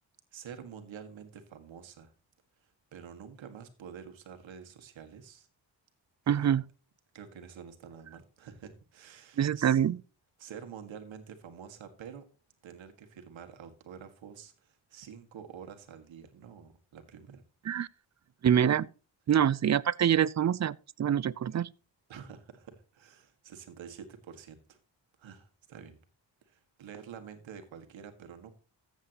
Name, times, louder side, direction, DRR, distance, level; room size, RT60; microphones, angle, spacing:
voice 1, 0.3-2.1 2.6-5.5 6.3-6.5 7.1-9.8 10.4-12.2 12.6-17.4 19.3-19.5 22.1-24.8 25.2-26.0 26.5-28.6, right 7 dB, 85° right, 1.8 m, -48 dB
voice 2, 6.3-6.6 9.4-10.0 17.7-17.9 18.4-18.9 19.3-21.7, right 9 dB, 40° right, 0.5 m, -25 dB
14.0 x 8.1 x 2.9 m
cardioid pair, 65°, 45 cm